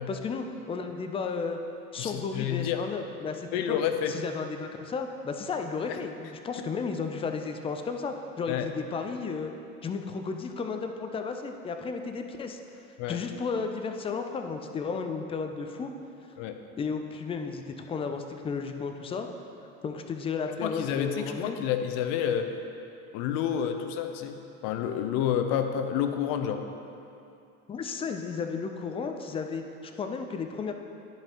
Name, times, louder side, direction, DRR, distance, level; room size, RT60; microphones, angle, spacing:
voice 1, 0.1-1.6 1.9-3.8 4.1-9.5 9.8-12.6 13.1-15.9 16.8-19.3 19.8-21.6 27.7-30.7, left 5 dB, 15° left, 5 dB, 0.4 m, -33 dB
voice 2, 2.0-2.8 3.5-4.1 5.9-6.0 8.5-8.7 13.0-13.2 16.4-16.6 20.6-22.5 23.1-24.4 24.6-26.6, left 9 dB, 50° left, 7 dB, 0.7 m, -29 dB
11.5 x 5.3 x 2.9 m, 2.7 s
hypercardioid pair, 80°, 45 cm